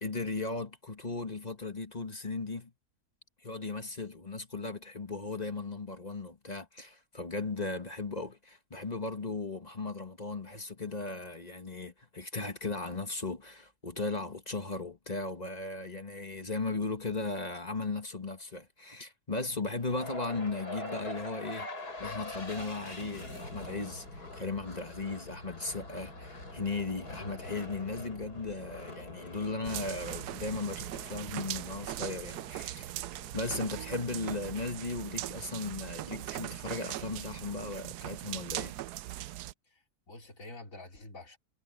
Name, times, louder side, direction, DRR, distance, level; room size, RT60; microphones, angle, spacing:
voice 1, 0.0-2.7 3.4-21.7 22.0-33.0 33.3-38.7, left 3 dB, 25° left, 1.5 m, -37 dB
sound 1, 19.8-34.0, left 2 dB, 75° left, 6.8 m, -44 dB
sound 2, 29.6-39.5, right 14 dB, 85° right, 1.1 m, -40 dB
voice 2, 39.7-41.4, left 2 dB, 55° left, 4.2 m, -48 dB
omnidirectional pair, 1.7 m